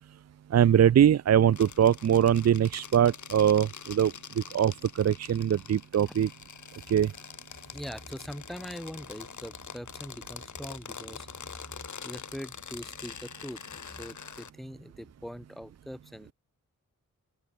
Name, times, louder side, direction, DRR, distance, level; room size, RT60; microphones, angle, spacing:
voice 1, 0.5-6.3 6.9-7.1, right 9 dB, 60° right, 0.5 m, -22 dB
sound 1, 1.5-14.5, left 7 dB, 75° left, 5.3 m, -45 dB
voice 2, 7.7-11.7 12.0-16.3, equal, ahead, 2.5 m, -42 dB
open air
wide cardioid pair, 160°, 30 cm